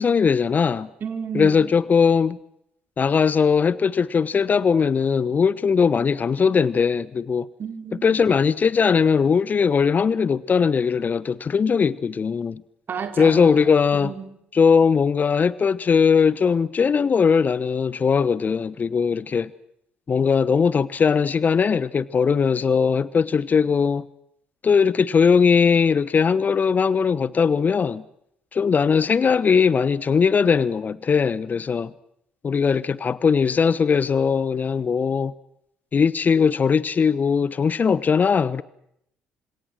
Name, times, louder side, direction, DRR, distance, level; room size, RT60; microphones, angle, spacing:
voice 1, 0.0-0.9 1.3-2.4 3.0-7.5 8.0-12.6 13.2-14.1 14.5-19.5 20.1-24.0 24.6-28.0 28.5-31.9 32.4-35.3 35.9-38.6, left 6 dB, 35° left, 1.1 m, -19 dB
voice 2, 1.0-1.7 7.6-8.2 12.9-14.3, right 6 dB, 45° right, 4.2 m, -32 dB
29.0 x 26.5 x 6.3 m
figure-of-eight pair, 50°, 5 cm